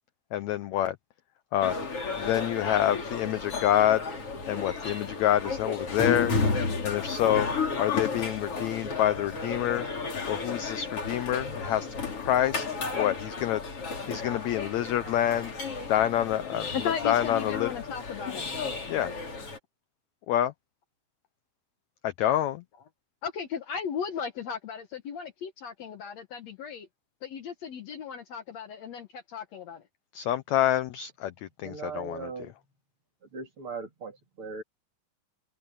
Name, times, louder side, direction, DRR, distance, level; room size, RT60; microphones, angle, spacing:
voice 1, 0.3-0.9 1.5-1.8 2.2-4.0 4.5-6.3 6.8-7.5 7.8-9.9 10.3-12.6 12.9-13.6 14.1-15.5 15.9-16.7 17.0-17.7 18.9-19.1 20.3-20.5 22.0-22.6 30.1-32.3, left 12 dB, 80° left, 1.6 m, -27 dB
sound 1, 1.6-19.6, left 4 dB, 40° left, 4.5 m, -33 dB
voice 2, 16.7-18.5 23.2-26.9 27.2-29.8, left 7 dB, 60° left, 2.1 m, -36 dB
voice 3, 31.6-32.5 33.3-34.6, right 4 dB, 40° right, 3.2 m, -39 dB
open air
omnidirectional pair, 4.0 m